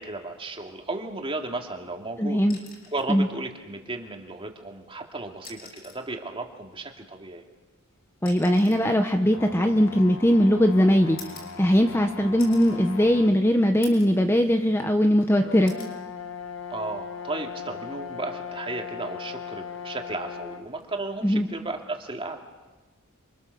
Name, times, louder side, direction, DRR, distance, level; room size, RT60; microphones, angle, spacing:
voice 1, 0.0-2.4 2.9-7.4 16.7-22.4, right 2 dB, 25° right, 3 dB, 2.6 m, -34 dB
voice 2, 2.2-2.6 3.1-3.3 8.2-11.2 11.6-15.7 21.2-21.5, equal, 10° left, 5 dB, 1.0 m, -20 dB
sound 1, 2.5-3.1 4.5-4.7 5.3-6.1 7.3-10.3 11.2-12.0 12.4-12.8 13.3-13.4 13.8-14.2 14.6-15.2 15.7-16.0 17.4-17.7, left 4 dB, 45° left, 6.4 m, -47 dB
sound 2, 9.3-13.4 14.1-14.2 15.4-20.7, left 6 dB, 65° left, 1.2 m, -39 dB
28.5 x 24.5 x 7.0 m, 1.2 s
head